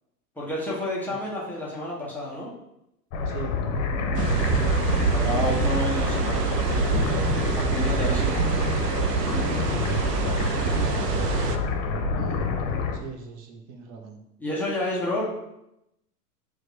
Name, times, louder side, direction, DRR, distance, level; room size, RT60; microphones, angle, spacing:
voice 1, 0.4-2.5 5.1-6.9 7.5-8.3 14.4-15.2, left 1 dB, 5° left, -6 dB, 0.3 m, -30 dB
sound 1, 3.1-13.0, left 4 dB, 40° left, 0.7 m, -27 dB
voice 2, 3.3-3.6 12.1-12.5 12.9-14.2, right 3 dB, 40° right, 3 dB, 0.9 m, -41 dB
sound 2, 4.1-11.6, right 7 dB, 85° right, 0.6 m, -26 dB
6.2 x 2.3 x 3.1 m, 0.83 s
figure-of-eight pair, 95°, 48 cm